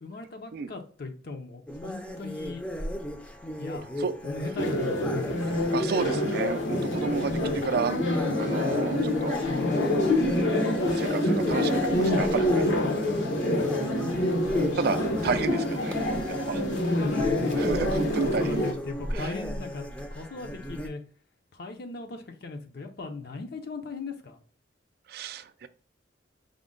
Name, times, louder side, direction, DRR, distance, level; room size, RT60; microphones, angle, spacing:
voice 1, 0.0-2.6 3.6-3.8 4.2-5.3 16.8-17.7 18.2-21.0 21.5-24.4, left 3 dB, 55° left, 0.5 m, -38 dB
sound 1, 1.7-20.9, equal, 5° left, 0.5 m, -35 dB
sound 2, 4.6-18.7, left 1 dB, 85° left, 1.0 m, -27 dB
voice 2, 5.7-9.4 10.9-12.7 14.1-16.0 16.3-16.6 17.6-18.7 19.1-19.4 25.1-25.7, right 5 dB, 55° right, 0.3 m, -31 dB
5.0 x 2.1 x 3.7 m
head